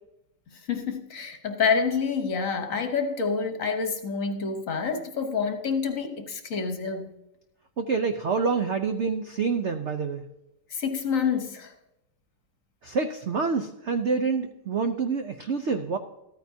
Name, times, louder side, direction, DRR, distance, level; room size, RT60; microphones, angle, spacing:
voice 1, 0.5-7.1 10.7-11.7, left 5 dB, 50° left, 5 dB, 1.3 m, -28 dB
voice 2, 7.8-10.3 12.8-16.0, right 5 dB, 65° right, 6 dB, 0.7 m, -27 dB
14.0 x 14.0 x 2.8 m, 0.89 s
omnidirectional pair, 2.0 m